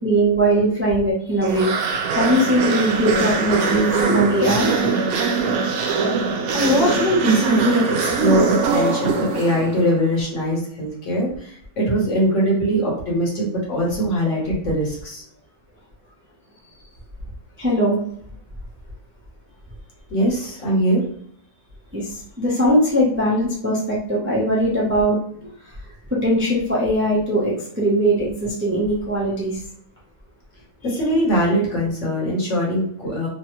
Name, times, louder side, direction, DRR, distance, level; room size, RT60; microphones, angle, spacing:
voice 1, 0.0-4.7 17.6-18.0 21.9-25.5 26.1-29.6, right 1 dB, 15° right, -6 dB, 0.4 m, -20 dB
sound 1, 1.4-9.9, right 4 dB, 75° right, 1.0 m, -22 dB
voice 2, 6.5-15.2 20.1-21.0 30.8-33.3, equal, 55° left, -3 dB, 1.3 m, -21 dB
3.2 x 2.1 x 2.9 m, 0.64 s
omnidirectional pair, 1.5 m